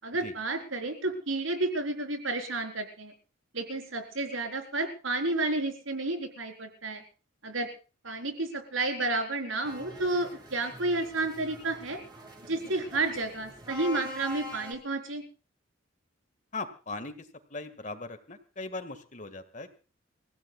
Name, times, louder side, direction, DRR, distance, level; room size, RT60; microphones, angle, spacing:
voice 1, 0.0-3.1 3.5-7.0 7.4-7.7 8.0-12.0 12.4-15.2, right 2 dB, 80° right, 5 dB, 4.2 m, -31 dB
sound 1, 9.6-14.7, equal, 20° right, 7.1 m, -44 dB
voice 2, 16.5-17.1 17.5-19.8, left 3 dB, 40° left, 10 dB, 1.8 m, -39 dB
28.5 x 16.5 x 2.4 m, 0.34 s
head